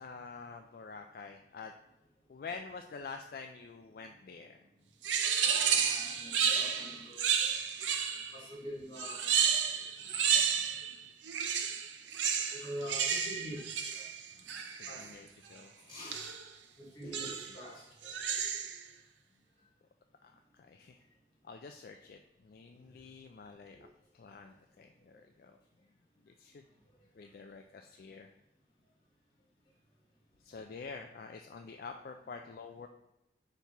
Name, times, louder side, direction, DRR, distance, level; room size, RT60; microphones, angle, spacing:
voice 1, 0.0-1.7 2.3-4.6 14.8-15.7 17.0-17.6 20.2-21.0 21.4-23.8 24.1-25.6 26.3-26.6 27.2-28.3 30.4-32.9, left 4 dB, 50° left, 5 dB, 0.3 m, -47 dB
sound 1, 5.0-8.4 9.0-11.0 11.2-15.1 16.1-16.5 17.1-17.6 18.0-18.8, right 7 dB, 90° right, 0.6 m, -31 dB
voice 2, 5.4-7.2 8.3-9.7 10.0-10.1 12.5-14.0 14.9-15.1 15.9-16.3 16.8-18.4 23.7-23.9, equal, 25° left, -7 dB, 2.3 m, -45 dB
5.4 x 4.5 x 4.6 m, 0.88 s
head